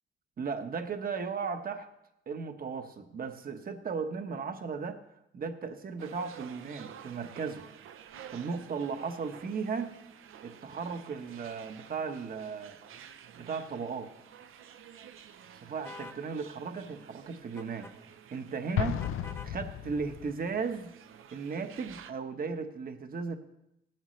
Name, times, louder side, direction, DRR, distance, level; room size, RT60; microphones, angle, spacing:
voice 1, 0.4-1.9 2.3-5.0 5.3-7.6 8.3-10.0 10.4-12.8 13.3-14.1 15.6-17.9 18.3-19.0 19.4-20.9 21.3-23.4, right 5 dB, 45° right, 8 dB, 1.0 m, -36 dB
sound 1, 6.0-22.1, right 9 dB, 80° right, 0.7 m, -52 dB
sound 2, 15.8-16.2 17.6-17.9 19.0-19.5, left 3 dB, 10° left, 0.6 m, -46 dB
Explosion, 18.8-20.5, left 11 dB, 85° left, 0.5 m, -34 dB
17.5 x 12.0 x 3.2 m, 0.85 s
cardioid pair, 120°, 21 cm